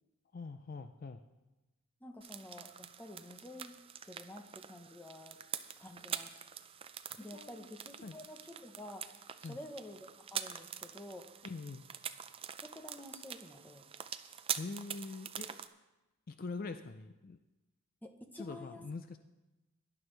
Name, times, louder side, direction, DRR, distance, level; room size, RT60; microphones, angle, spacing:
voice 1, 0.3-1.2 7.3-7.7 8.0-8.1 9.4-9.6 11.4-11.8 14.6-15.5 16.3-17.4 18.4-19.2, left 3 dB, 40° left, 8 dB, 0.4 m, -43 dB
voice 2, 2.0-5.4 5.8-6.4 7.2-11.3 12.6-13.8 18.0-18.8, left 1 dB, 10° left, 4 dB, 0.9 m, -50 dB
sound 1, 2.2-15.7, right 8 dB, 25° right, 0.4 m, -45 dB
17.5 x 11.0 x 3.3 m, 1.1 s
head